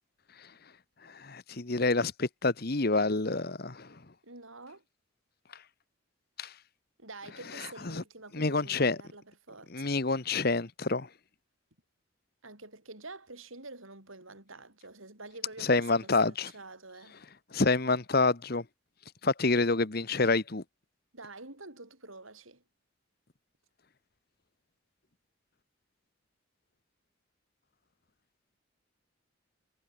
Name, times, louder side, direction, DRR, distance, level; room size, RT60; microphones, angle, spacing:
voice 1, 1.2-3.9 6.4-6.5 7.9-8.0 8.3-9.0 9.7-11.1 15.7-16.5 17.5-18.6 19.2-20.6, left 3 dB, 45° left, 1.1 m, -27 dB
voice 2, 4.2-4.8 7.0-10.0 12.4-17.2 21.1-22.6, right 3 dB, 75° right, 7.1 m, -47 dB
head